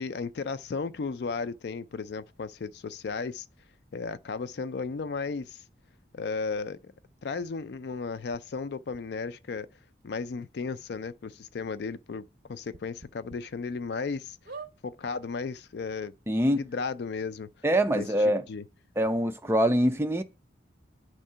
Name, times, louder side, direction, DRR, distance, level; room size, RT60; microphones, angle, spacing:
voice 1, 0.0-3.5 3.9-5.6 6.1-6.9 7.2-9.7 10.0-12.2 12.5-14.4 14.8-16.1 16.5-17.5 17.9-18.6, left 4 dB, 65° left, 0.4 m, -34 dB
sound 1, 8.3-8.4 8.9-9.0 10.0-10.1 10.4-10.5 10.9-11.0 12.7-13.4 13.9-14.0 14.4-14.7 15.6-15.7 15.9-16.0, right 4 dB, 50° right, 0.8 m, -44 dB
voice 2, 16.3-16.6 17.6-18.4 19.0-20.2, equal, 15° right, 0.4 m, -24 dB
8.5 x 3.7 x 5.5 m
head